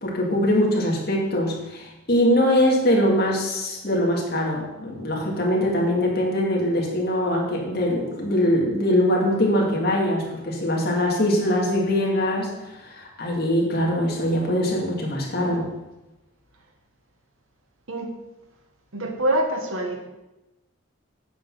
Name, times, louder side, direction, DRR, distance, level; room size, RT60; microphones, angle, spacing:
voice 1, 0.0-12.5 12.8-15.7, left 1 dB, 50° left, -2 dB, 2.1 m, -22 dB
voice 2, 18.9-20.0, right 1 dB, 80° right, 3 dB, 1.4 m, -25 dB
8.5 x 5.9 x 6.1 m, 0.99 s
head